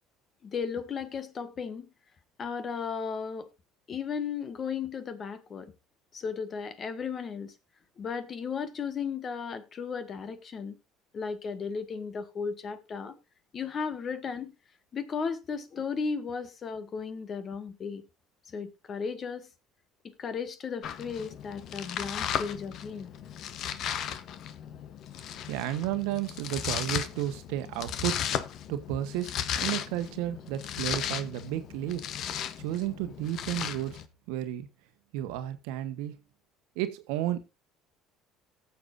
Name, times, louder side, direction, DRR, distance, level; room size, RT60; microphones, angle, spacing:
voice 1, 0.4-1.9 2.4-3.5 3.9-5.7 6.1-7.5 8.0-10.7 11.1-13.1 13.5-14.5 14.9-18.0 18.5-19.5 20.0-23.1, left 6 dB, 40° left, 1.5 m, -35 dB
Domestic sounds home sounds, 20.8-34.0, left 9 dB, 60° left, 0.9 m, -36 dB
voice 2, 25.5-28.3 28.7-32.0 32.6-34.0 34.3-34.7 35.1-36.2 36.7-37.4, right 12 dB, 80° right, 1.2 m, -32 dB
18.5 x 7.0 x 2.6 m
supercardioid pair, 80°, 0 cm